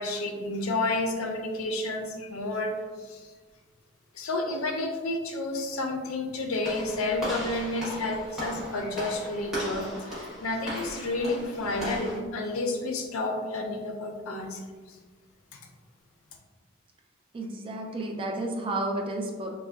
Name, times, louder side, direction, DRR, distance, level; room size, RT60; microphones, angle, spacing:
voice 1, 0.0-2.7 3.1-3.3 4.1-14.6, left 2 dB, 80° left, 2 dB, 0.5 m, -30 dB
Walk footsteps / Slam, 6.6-12.2, equal, 5° right, 1.0 m, -37 dB
voice 2, 17.3-19.5, right 2 dB, 25° right, 2 dB, 0.3 m, -31 dB
3.5 x 2.0 x 2.3 m, 1.4 s
head